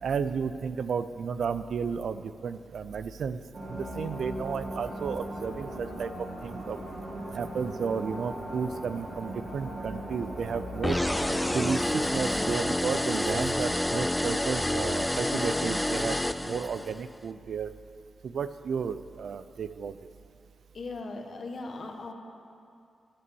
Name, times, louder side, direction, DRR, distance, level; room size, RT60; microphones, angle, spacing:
voice 1, 0.0-3.4 3.7-6.8 7.3-11.0 11.5-16.2 16.4-17.7 18.2-20.0, right 6 dB, 75° right, 13 dB, 0.4 m, -33 dB
sound 1, 3.5-12.4, right 1 dB, 50° right, 2.3 m, -38 dB
sound 2, 10.8-17.0, left 1 dB, 10° left, 0.3 m, -28 dB
voice 2, 20.7-22.1, left 3 dB, 55° left, 2 dB, 1.4 m, -38 dB
11.0 x 6.8 x 7.0 m, 2.4 s
cardioid pair, 85°, 0 cm